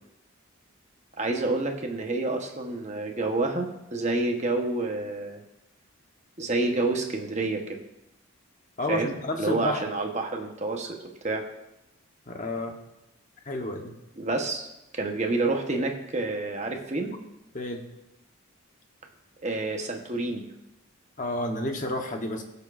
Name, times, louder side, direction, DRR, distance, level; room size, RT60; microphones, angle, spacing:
voice 1, 1.2-5.4 6.4-7.8 8.9-11.0 11.2-11.5 14.2-14.7 14.9-17.1 19.4-20.4, right 2 dB, 30° right, 3 dB, 1.0 m, -28 dB
voice 2, 8.8-9.8 12.3-12.8 13.5-13.9 17.5-17.9 21.2-22.4, left 1 dB, 35° left, 3 dB, 1.0 m, -30 dB
17.0 x 6.8 x 2.5 m, 0.89 s
head